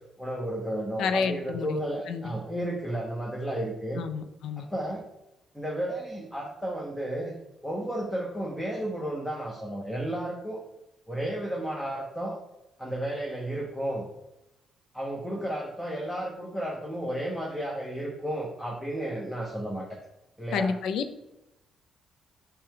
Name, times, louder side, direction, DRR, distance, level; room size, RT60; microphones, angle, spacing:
voice 1, 0.2-4.0 4.6-5.0 5.5-7.3 7.6-10.6 11.1-12.4 12.8-14.1 14.9-19.9 20.4-20.7, right 1 dB, 5° left, -2 dB, 0.9 m, -33 dB
voice 2, 1.0-1.8 2.1-2.3 4.0-4.7 20.5-21.0, left 5 dB, 75° left, 10 dB, 0.4 m, -29 dB
6.6 x 2.2 x 3.6 m, 0.90 s
cardioid pair, 90°, 0 cm